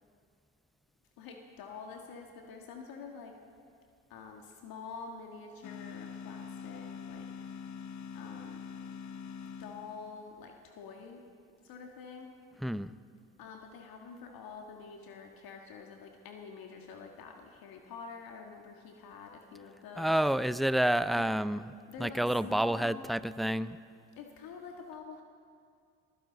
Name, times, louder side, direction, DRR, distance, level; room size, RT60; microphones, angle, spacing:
voice 1, 1.2-3.4 4.1-7.3 8.1-8.6 9.6-11.2 11.6-12.3 13.4-20.2 21.1-21.3 21.9-23.1 24.2-25.2, left 5 dB, 60° left, 2 dB, 1.8 m, -47 dB
sound 1, 5.6-10.3, left 6 dB, 45° left, 0.8 m, -44 dB
voice 2, 12.6-12.9 20.0-21.7 22.0-23.8, right 1 dB, ahead, 15 dB, 0.4 m, -29 dB
23.0 x 16.0 x 4.0 m, 2.3 s
hypercardioid pair, 60°, 39 cm